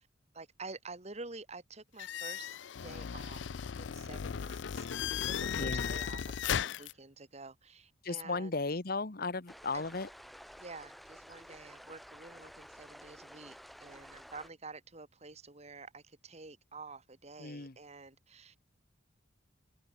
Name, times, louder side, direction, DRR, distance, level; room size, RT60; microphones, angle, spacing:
voice 1, 0.3-2.6 2.8-3.5 3.8-4.9 5.2-8.5 9.7-9.8 10.6-18.6, right 3 dB, 35° right, 2.0 m, -49 dB
sound 1, 2.0-6.9, left 8 dB, 70° left, 0.5 m, -36 dB
voice 2, 5.6-5.9 8.0-10.1 17.4-17.7, left 3 dB, 50° left, 1.3 m, -35 dB
sound 2, 9.5-14.5, equal, ahead, 4.7 m, -52 dB
head